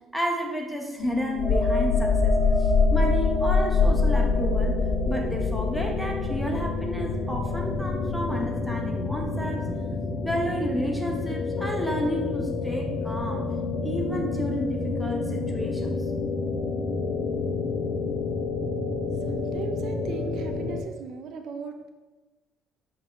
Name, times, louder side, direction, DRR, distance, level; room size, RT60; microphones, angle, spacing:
voice 1, 0.1-2.3 2.6-9.7 10.2-13.5 13.8-16.0, equal, ahead, 1 dB, 1.3 m, -31 dB
sound 1, 1.0-20.8, left 4 dB, 55° left, 1.3 m, -30 dB
sound 2, 1.4-8.8 9.2-9.4, left 3 dB, 75° left, 2.7 m, -24 dB
voice 2, 19.3-21.9, right 5 dB, 60° right, 5 dB, 0.8 m, -37 dB
6.0 x 5.4 x 6.4 m, 1.2 s
cardioid pair, 135°, 0 cm